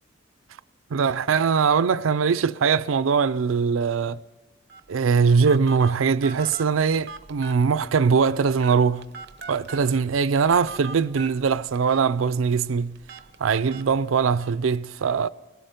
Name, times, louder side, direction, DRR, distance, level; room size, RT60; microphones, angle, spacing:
voice 1, 0.9-4.2 4.9-9.1 9.5-13.0 13.4-15.3, right 5 dB, 85° right, 0.5 m, -21 dB
Telephone, 4.7-14.5, right 3 dB, 55° right, 0.8 m, -42 dB
18.0 x 13.5 x 5.2 m
head